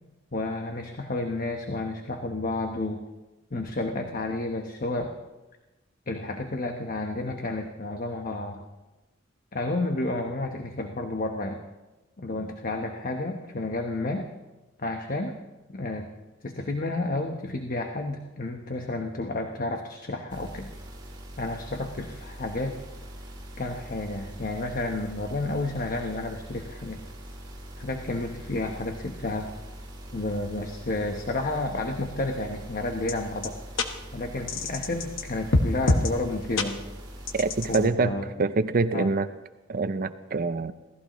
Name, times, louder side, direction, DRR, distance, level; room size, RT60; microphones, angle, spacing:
voice 1, 0.3-3.0 3.5-5.1 6.1-8.6 9.5-11.6 12.2-14.3 14.8-15.4 15.7-16.1 16.4-20.7 21.4-22.8 23.6-27.0 27.8-29.5 30.1-33.6 34.1-36.8 37.7-38.3 38.9-39.1, left 2 dB, 45° left, 4 dB, 1.1 m, -31 dB
sound 1, 20.3-37.9, right 1 dB, 25° right, 4.1 m, -43 dB
sound 2, 33.1-33.2 33.4-33.5 33.8-33.9 34.5-35.2 35.5-36.1 36.6-36.7 37.3-37.8, left 2 dB, 70° left, 1.3 m, -24 dB
voice 2, 37.3-38.1 38.4-39.3 39.7-40.7, right 3 dB, 45° right, 11 dB, 0.6 m, -25 dB
27.0 x 17.0 x 3.1 m, 1.1 s
head